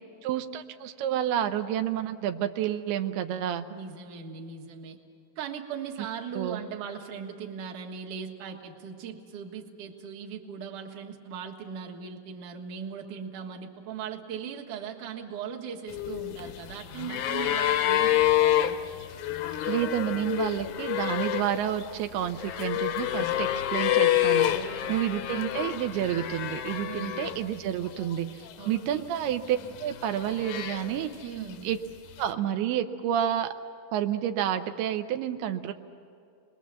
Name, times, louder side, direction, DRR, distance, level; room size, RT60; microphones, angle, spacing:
voice 1, 0.2-3.7 6.4-6.6 19.7-28.3 28.7-31.1 31.6-31.8 32.2-33.5 33.9-35.7, right 10 dB, 90° right, 7 dB, 2.8 m, -29 dB
voice 2, 3.7-5.0 5.4-18.8 24.5-25.4 26.9-27.3 28.6-29.1 31.2-31.7, right 7 dB, 60° right, 0 dB, 2.8 m, -39 dB
sound 1, 15.9-27.6 27.9-28.8 29.5-31.2 32.2-32.3, left 12 dB, 75° left, 1.9 m, -28 dB
29.0 x 21.0 x 7.4 m, 2.4 s
omnidirectional pair, 4.4 m